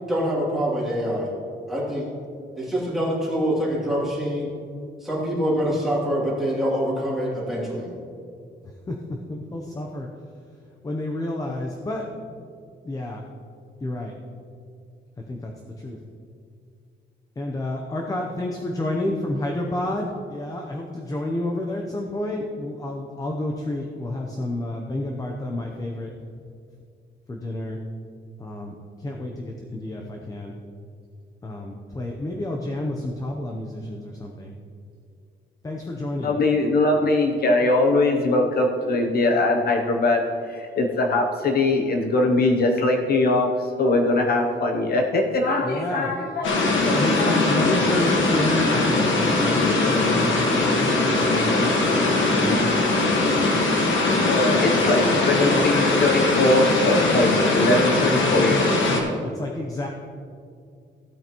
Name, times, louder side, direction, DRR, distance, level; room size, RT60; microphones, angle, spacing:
voice 1, 0.1-1.3 1.7-2.1 2.6-4.5 5.0-7.9, equal, ahead, -7 dB, 2.8 m, -25 dB
voice 2, 9.3-10.1 10.8-12.0 12.8-13.2 13.8-14.1 15.3-15.5 15.8-16.0 17.4-26.1 27.3-27.8 28.4-30.5 31.4-34.6 35.6-36.4 45.6-46.1 46.9-50.9 51.2-51.8 52.1-52.9 55.3-55.7 57.7-59.9, left 1 dB, 20° left, 1 dB, 0.7 m, -30 dB
voice 3, 36.2-47.8 54.3-58.7, left 2 dB, 55° left, 3 dB, 0.8 m, -22 dB
sound 1, 46.4-59.0, left 2 dB, 80° left, 1.5 m, -21 dB
16.0 x 8.8 x 3.0 m, 2.4 s
wide cardioid pair, 170°, 19 cm